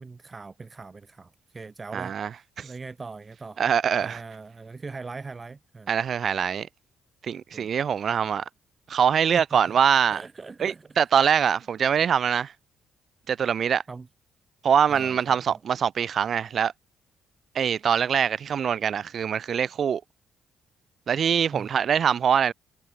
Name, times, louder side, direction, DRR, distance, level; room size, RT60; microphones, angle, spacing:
voice 1, 0.0-3.6 4.0-5.9 7.5-7.7 9.3-9.4 10.1-10.9 13.9-14.1 14.9-15.6 21.5-21.7, right 4 dB, 30° right, 7.4 m, -41 dB
voice 2, 1.9-2.3 2.6-2.7 3.6-4.2 5.9-6.7 7.2-8.4 8.9-10.2 10.6-12.5 13.3-13.8 14.6-16.7 17.5-20.0 21.1-22.5, right 8 dB, 55° right, 2.2 m, -23 dB
cardioid pair, 90°, 0 cm